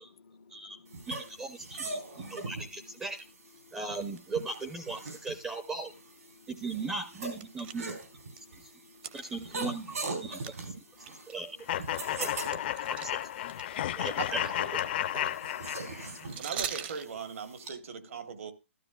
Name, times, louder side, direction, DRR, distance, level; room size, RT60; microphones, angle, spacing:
voice 1, 0.2-1.0 2.2-2.4 3.6-3.8 6.4-6.5 8.4-9.1 11.1-11.2 15.6-16.4, left 5 dB, 75° left, 0.7 m, -58 dB
sound 1, 0.9-17.7, right 3 dB, 85° right, 4.0 m, -42 dB
voice 2, 1.1-3.3 3.7-5.9 6.5-7.9 8.4-8.7 9.1-11.6 12.1-13.1 14.0-14.6 15.1-15.3, right 3 dB, 10° right, 0.5 m, -38 dB
sound 2, 1.3-1.4 1.7-2.0 2.5-2.6 3.0-3.2 3.9-5.3 5.6-5.7 6.3-6.4 6.8-8.4 8.9-10.2 10.4-10.6 11.0-13.6 13.9-17.1, right 9 dB, 40° right, 0.7 m, -42 dB
sound 3, 11.7-16.3, left 12 dB, 45° left, 0.5 m, -33 dB
voice 3, 16.4-18.5, right 6 dB, 65° right, 1.2 m, -39 dB
12.5 x 12.5 x 2.3 m
hypercardioid pair, 150°, 8 cm